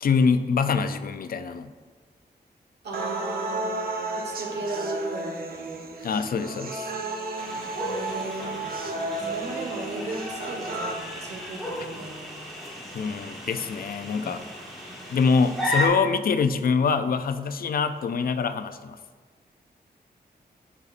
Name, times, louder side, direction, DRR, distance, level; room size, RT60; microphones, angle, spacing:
voice 1, 0.0-1.7 6.0-6.9 12.9-14.4 15.1-19.0, left 5 dB, 60° left, 10 dB, 0.4 m, -24 dB
voice 2, 2.8-3.7 4.1-5.8 7.8-8.6 9.1-12.5, right 2 dB, 80° right, 0 dB, 1.3 m, -36 dB
sound 1, 2.9-10.9, right 2 dB, 60° right, 0.7 m, -33 dB
sound 2, 7.4-15.9, left 1 dB, ahead, 1.7 m, -35 dB
12.0 x 4.1 x 2.5 m, 1.5 s
wide cardioid pair, 145°, 17 cm